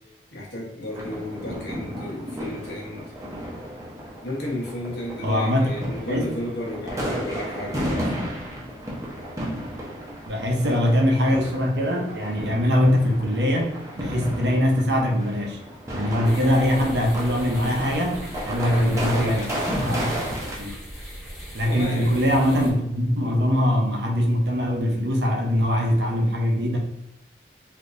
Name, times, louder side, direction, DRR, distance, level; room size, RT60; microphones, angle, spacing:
voice 1, 0.3-3.1 4.2-8.4 18.6-19.8 21.6-22.3, left 1 dB, 80° left, -3 dB, 1.1 m, -33 dB
sound 1, 0.9-20.6, equal, 15° right, 0.7 m, -33 dB
voice 2, 5.2-5.7 6.1-6.3 10.3-15.6 15.9-19.5 19.8-20.8 21.5-26.8, equal, 80° right, 1 dB, 0.8 m, -22 dB
sound 2, 16.2-22.7, equal, ahead, 1.4 m, -39 dB
3.5 x 2.8 x 2.5 m, 0.89 s
head